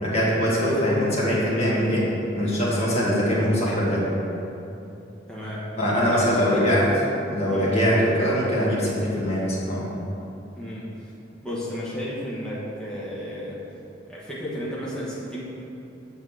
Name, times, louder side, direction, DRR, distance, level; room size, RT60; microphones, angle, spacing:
voice 1, 0.0-2.1 2.3-4.1 5.8-6.9 7.3-9.8, equal, 35° left, -6 dB, 1.7 m, -22 dB
voice 2, 5.3-5.7 6.1-6.8 7.4-7.8 10.5-11.1 11.4-13.6 14.1-15.4, equal, 5° left, -8 dB, 1.2 m, -33 dB
7.3 x 4.1 x 6.2 m, 2.9 s
head